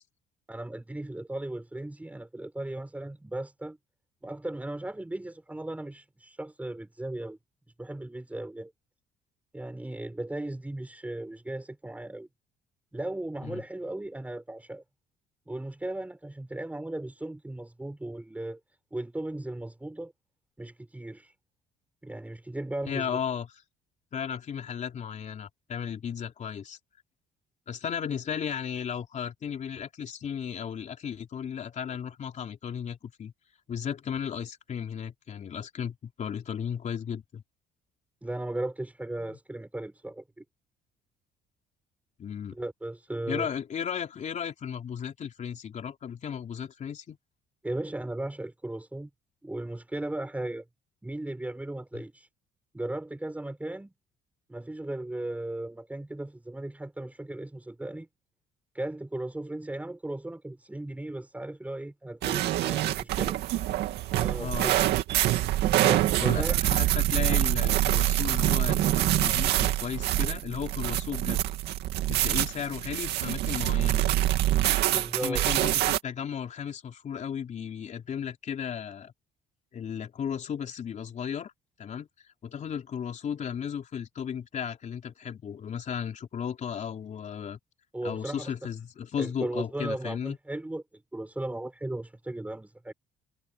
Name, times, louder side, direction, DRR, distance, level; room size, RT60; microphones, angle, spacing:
voice 1, 0.5-3.8 4.2-7.4 7.8-8.7 9.5-12.3 12.9-14.8 15.5-18.6 18.9-20.1 20.6-21.3 22.0-23.2 38.2-40.4 42.5-43.5 47.6-49.1 49.4-50.6 51.0-52.3 52.7-53.9 54.5-58.1 58.7-63.3 64.1-64.7 65.8-66.6 74.9-75.5 87.9-88.7 89.2-92.9, right 1 dB, 10° right, 4.9 m, -36 dB
voice 2, 22.9-23.6 24.1-26.8 27.7-33.3 33.7-37.4 39.2-39.4 42.2-42.6 43.3-47.2 51.9-52.0 64.4-64.7 66.2-71.4 72.1-74.1 75.2-79.1 79.7-81.5 81.8-82.1 82.4-87.6 88.0-90.4, left 8 dB, 45° left, 3.5 m, -35 dB
sound 1, 62.2-76.0, right 14 dB, 80° right, 2.2 m, -25 dB
cardioid pair, 110°, 17 cm